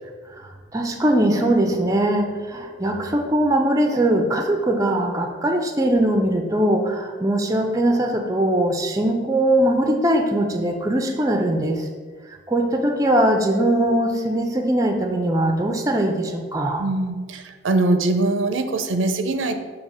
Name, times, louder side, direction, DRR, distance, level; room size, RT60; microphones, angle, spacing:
voice 1, 0.7-11.9 12.5-16.8, right 1 dB, 15° right, 4 dB, 0.4 m, -21 dB
voice 2, 16.8-19.6, right 2 dB, 80° right, 8 dB, 0.5 m, -22 dB
6.4 x 2.9 x 5.4 m, 1.5 s
head